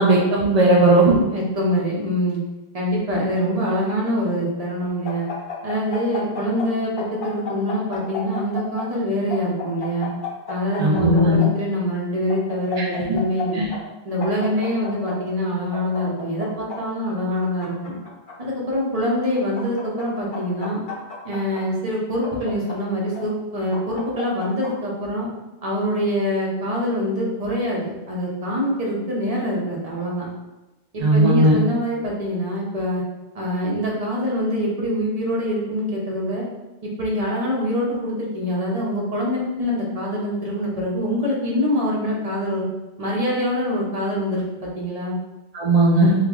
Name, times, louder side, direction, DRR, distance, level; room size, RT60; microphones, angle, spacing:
voice 1, 0.0-1.2 10.8-11.4 12.8-13.2 13.5-13.7 31.0-31.6 45.5-46.2, right 1 dB, 55° right, -3 dB, 0.4 m, -17 dB
voice 2, 0.6-2.4 2.7-5.3 5.6-10.1 10.5-13.7 14.0-17.9 18.4-20.8 21.2-25.3 25.6-30.3 30.9-33.0 33.3-36.4 36.8-42.7 43.0-44.4 44.8-45.1, equal, 40° right, -4 dB, 0.8 m, -24 dB
sound 1, 5.0-6.7 7.0-8.8 9.3-11.5 12.3-13.4 13.7-13.8 14.2-15.1 15.7-16.8 17.4-18.3 19.1-20.0 20.3-21.6 22.2-23.2 23.7-24.7, left 6 dB, 55° left, 0.9 m, -32 dB
3.0 x 2.4 x 3.5 m, 1.1 s
omnidirectional pair, 1.1 m